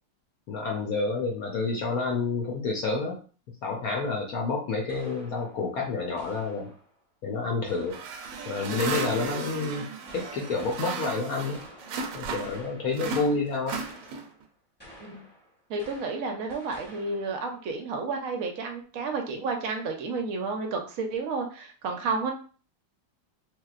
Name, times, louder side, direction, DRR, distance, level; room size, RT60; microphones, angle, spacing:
voice 1, 0.5-3.2 3.6-6.7 7.2-8.0 8.5-9.9 10.1-11.6 12.1-13.8, left 4 dB, 70° left, 0 dB, 0.9 m, -29 dB
sound 1, 4.9-7.0 7.7-9.6 10.1-13.2 13.7-14.5 14.8-17.5, equal, 10° left, 0.7 m, -51 dB
sound 2, 7.9-12.6 12.9-14.4, right 5 dB, 85° right, 1.3 m, -35 dB
voice 2, 15.7-22.3, right 4 dB, 65° right, 3 dB, 0.9 m, -31 dB
3.3 x 2.8 x 2.4 m, 0.40 s
omnidirectional pair, 2.0 m